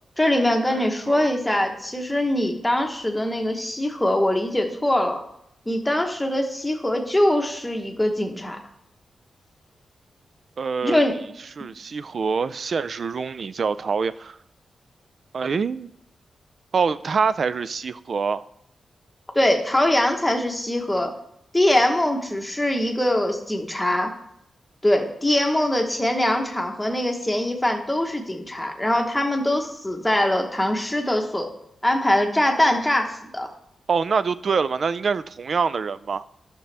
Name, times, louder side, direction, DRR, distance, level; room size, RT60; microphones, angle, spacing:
voice 1, 0.2-5.2 5.7-8.6 10.8-11.1 19.3-21.1 21.5-24.1 24.8-31.5 31.8-33.5, left 1 dB, 10° left, 1.1 m, -22 dB
voice 2, 0.7-1.3 10.6-11.0 11.6-14.4 15.3-15.9 16.7-18.4 33.9-36.3, right 5 dB, 50° right, 0.3 m, -25 dB
12.0 x 6.0 x 3.4 m
wide cardioid pair, 130°, 0 cm